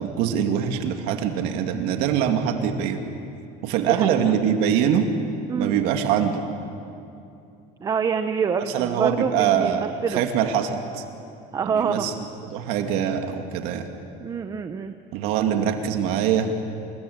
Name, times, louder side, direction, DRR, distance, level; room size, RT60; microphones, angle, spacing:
voice 1, 0.0-3.0 3.6-5.1 5.6-6.4 8.7-11.0 11.7-13.9 15.1-16.5, right 8 dB, 65° right, 5 dB, 2.4 m, -23 dB
voice 2, 3.8-4.4 5.5-5.8 7.8-10.2 11.5-12.1 14.2-14.9, right 6 dB, 20° right, 8 dB, 0.9 m, -26 dB
28.0 x 21.0 x 9.4 m, 2.7 s
cardioid pair, 160°, 17 cm